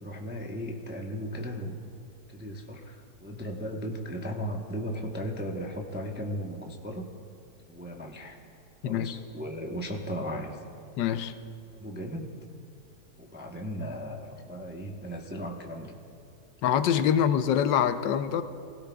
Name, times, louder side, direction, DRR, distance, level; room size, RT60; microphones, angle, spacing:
voice 1, 0.0-1.9 2.3-7.1 7.7-8.4 8.8-10.6 11.8-12.3 13.2-16.0, equal, 10° right, 1 dB, 0.4 m, -36 dB
voice 2, 8.8-9.2 11.0-11.3 16.6-18.4, left 9 dB, 90° left, 11 dB, 1.3 m, -25 dB
21.0 x 16.5 x 2.3 m, 2.4 s
omnidirectional pair, 1.9 m